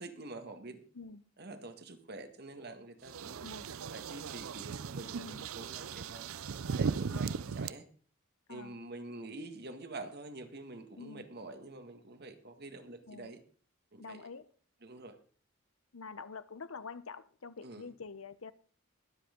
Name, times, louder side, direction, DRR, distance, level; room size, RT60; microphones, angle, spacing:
voice 1, 0.0-0.8 1.4-3.4 3.9-6.3 6.7-7.9 8.5-13.4 13.9-14.2 14.8-15.2 17.6-17.8, right 2 dB, 50° right, 1.8 m, -47 dB
sound 1, 3.1-7.7, right 5 dB, 85° right, 0.5 m, -37 dB
voice 2, 11.0-11.3 13.1-13.3 14.0-14.5 15.9-18.5, left 4 dB, 90° left, 0.9 m, -46 dB
22.0 x 7.9 x 3.8 m
head